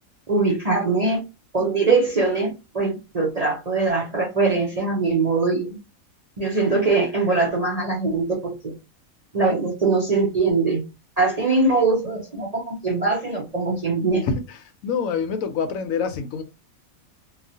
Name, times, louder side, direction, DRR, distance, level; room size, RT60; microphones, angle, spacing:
voice 1, 0.3-1.2 1.5-5.8 6.4-8.7 9.3-10.8 11.2-14.3, right 3 dB, 40° right, 0.6 m, -22 dB
voice 2, 14.8-16.4, left 6 dB, 75° left, 1.0 m, -25 dB
3.0 x 2.3 x 2.6 m
omnidirectional pair, 1.5 m